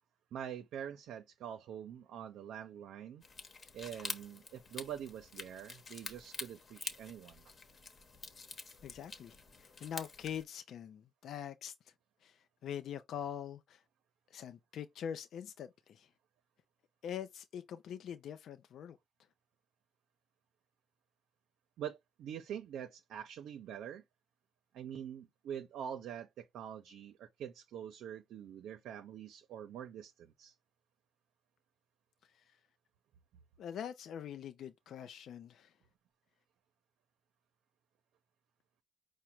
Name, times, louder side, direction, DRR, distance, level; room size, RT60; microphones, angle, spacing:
voice 1, 0.3-3.2 3.7-7.4 21.8-24.0 24.7-30.5, right 9 dB, 80° right, 0.6 m, -45 dB
sound 1, 3.2-10.4, left 4 dB, 45° left, 1.0 m, -47 dB
voice 2, 8.8-11.9 12.2-13.8 14.3-16.1 17.0-19.0 32.3-32.6 33.6-35.7, left 9 dB, 70° left, 0.5 m, -44 dB
5.0 x 2.1 x 4.4 m
cardioid pair, 90°, 0 cm